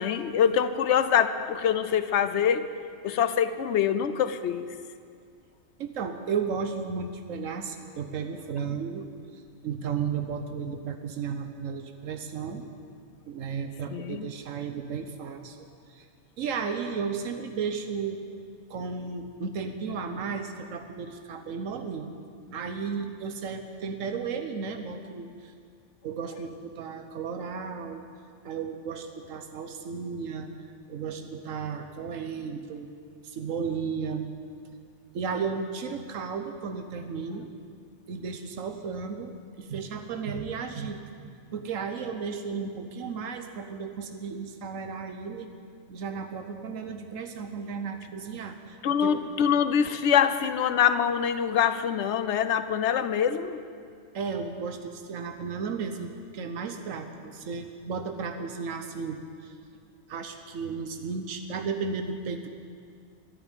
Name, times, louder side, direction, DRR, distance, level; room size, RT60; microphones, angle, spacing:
voice 1, 0.0-2.7 3.0-4.7 13.9-14.3 48.8-53.6, left 8 dB, 65° left, 12 dB, 0.9 m, -24 dB
voice 2, 5.8-9.1 9.3-12.6 13.3-15.6 15.9-16.1 16.4-18.2 18.7-22.1 22.5-25.5 26.0-28.1 28.4-30.5 30.9-32.9 33.2-34.3 35.1-37.5 38.1-45.5 45.9-49.2 54.1-59.6 60.1-62.5, right 5 dB, 90° right, 6 dB, 1.2 m, -34 dB
12.5 x 11.0 x 8.9 m, 2.3 s
omnidirectional pair, 1.3 m